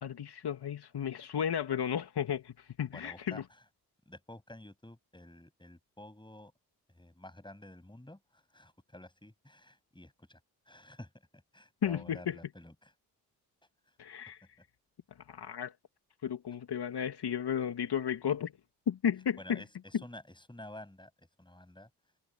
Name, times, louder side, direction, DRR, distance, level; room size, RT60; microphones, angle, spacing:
voice 1, 0.0-3.4 11.8-12.4 14.0-14.4 15.3-15.7 16.2-18.5 18.9-19.6, left 8 dB, 60° left, 2.3 m, -33 dB
voice 2, 2.9-3.6 4.1-6.5 6.9-10.4 10.7-12.9 13.9-14.0 19.4-21.9, left 1 dB, 10° left, 7.8 m, -51 dB
hypercardioid pair, 40°, 44 cm